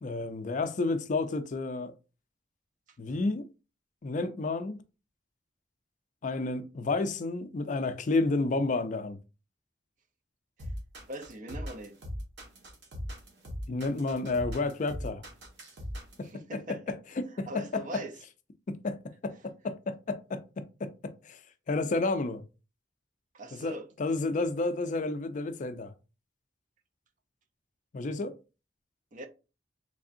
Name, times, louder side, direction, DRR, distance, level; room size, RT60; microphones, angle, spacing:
voice 1, 0.0-1.9 3.0-3.5 4.0-4.8 6.2-9.2 13.7-15.2 16.2-18.0 18.7-19.0 19.2-21.4 21.7-22.4 23.5-25.9 27.9-28.4, left 3 dB, 45° left, 0.4 m, -31 dB
sound 1, 10.6-16.3, equal, 70° right, 1.3 m, -39 dB
voice 2, 11.1-12.0 16.2-17.0 17.3-18.1 23.3-23.9 29.1-29.3, right 1 dB, 45° right, 0.5 m, -41 dB
3.5 x 3.3 x 2.5 m
head